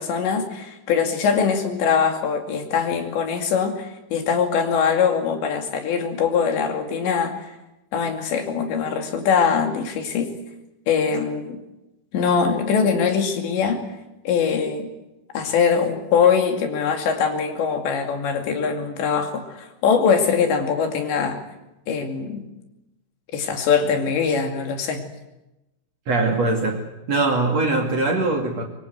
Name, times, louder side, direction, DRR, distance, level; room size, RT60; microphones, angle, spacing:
voice 1, 0.0-7.5 7.9-10.3 10.9-11.6 12.1-13.8 14.2-14.9 15.3-21.4 21.9-22.4 23.3-25.0, left 6 dB, 70° left, 4 dB, 4.7 m, -22 dB
voice 2, 26.1-28.6, right 3 dB, 40° right, 2 dB, 3.0 m, -22 dB
24.0 x 24.0 x 8.0 m, 0.97 s
omnidirectional pair, 5.3 m